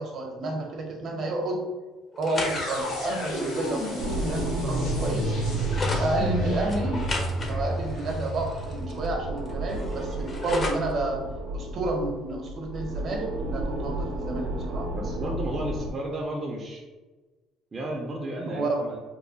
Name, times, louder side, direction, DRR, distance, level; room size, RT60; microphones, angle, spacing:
voice 1, 0.0-1.6 2.2-5.4 6.0-7.0 7.4-11.2 11.5-14.9 18.4-18.8, right 2 dB, 50° right, 2 dB, 0.7 m, -30 dB
sound 1, 2.1-6.1 6.7-9.1 9.4-10.9, left 2 dB, 30° left, 0.6 m, -36 dB
sound 2, 2.4-10.3, equal, 75° left, 1.1 m, -31 dB
sound 3, 4.0-15.9, right 1 dB, 90° right, 0.5 m, -33 dB
voice 2, 14.9-16.8 17.7-19.0, right 1 dB, 25° right, -2 dB, 0.4 m, -33 dB
3.0 x 2.2 x 3.8 m, 1.2 s
cardioid pair, 115°, 0 cm